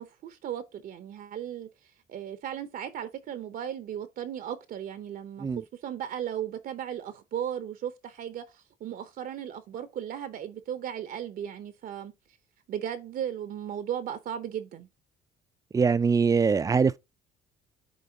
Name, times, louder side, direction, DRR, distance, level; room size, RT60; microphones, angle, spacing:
voice 1, 0.0-1.7 2.1-5.5 5.8-12.1 12.7-14.9, right 10 dB, 55° right, 0.7 m, -36 dB
voice 2, 15.7-17.0, right 5 dB, 20° right, 0.4 m, -23 dB
10.0 x 3.9 x 2.7 m
cardioid pair, 110°, 17 cm